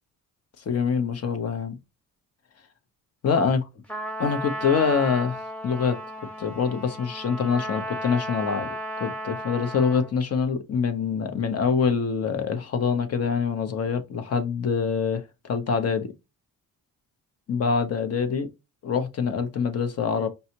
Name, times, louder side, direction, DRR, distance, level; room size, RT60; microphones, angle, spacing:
voice 1, 0.6-1.8 3.2-3.6 4.2-5.4 5.6-6.0 6.4-8.7 9.0-16.1 17.5-18.5 18.8-20.3, left 6 dB, 45° left, 0.9 m, -25 dB
Trumpet, 3.9-10.1, equal, 5° left, 1.0 m, -34 dB
5.5 x 2.3 x 2.9 m
cardioid pair, 115°, 34 cm